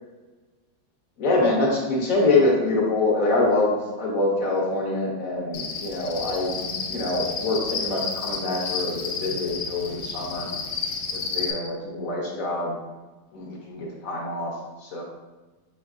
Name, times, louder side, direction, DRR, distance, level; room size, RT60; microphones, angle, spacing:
voice 1, 1.2-10.5 11.1-12.8 13.3-14.5 14.8-15.0, left 2 dB, 60° left, -2 dB, 1.0 m, -25 dB
Cricket, 5.5-11.5, left 5 dB, 90° left, 0.7 m, -31 dB
4.6 x 3.5 x 2.4 m, 1.2 s
omnidirectional pair, 1.9 m